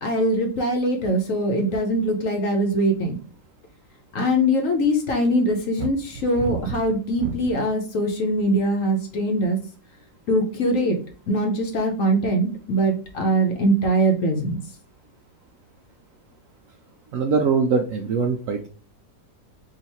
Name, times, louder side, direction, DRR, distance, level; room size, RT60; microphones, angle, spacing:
voice 1, 0.0-3.2 4.1-9.6 10.3-11.0 11.3-14.6, right 1 dB, 60° left, 2 dB, 1.0 m, -22 dB
sound 1, 5.8-7.7 8.4-8.8, right 6 dB, 85° right, 1.3 m, -32 dB
voice 2, 17.1-18.7, right 5 dB, 70° right, 3 dB, 0.8 m, -22 dB
3.8 x 2.5 x 4.1 m, 0.39 s
omnidirectional pair, 1.9 m